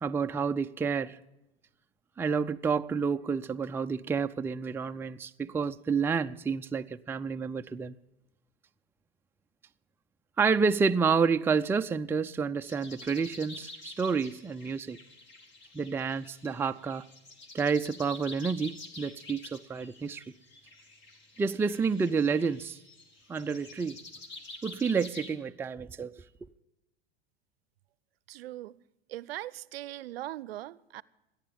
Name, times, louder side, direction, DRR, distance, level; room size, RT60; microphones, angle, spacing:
voice 1, 0.0-1.2 2.2-7.9 10.4-15.0 15.7-17.0 17.5-20.2 21.4-22.8 23.3-24.0 24.6-26.1, right 5 dB, 10° right, 0.4 m, -29 dB
sound 1, 12.7-25.3, left 2 dB, 40° left, 2.2 m, -48 dB
voice 2, 28.3-28.8 29.1-31.0, right 15 dB, 75° right, 0.6 m, -40 dB
27.5 x 10.5 x 3.5 m
hypercardioid pair, 95°, 30 cm